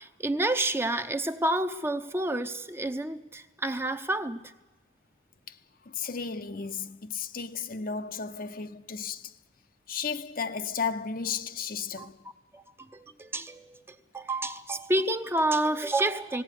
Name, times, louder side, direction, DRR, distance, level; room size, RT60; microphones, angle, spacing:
voice 1, 0.0-4.5 12.0-12.1 12.5-16.4, right 1 dB, 15° right, 0.7 m, -29 dB
voice 2, 5.8-9.3 9.9-12.2, left 6 dB, 50° left, 0.8 m, -34 dB
18.5 x 17.0 x 9.8 m
head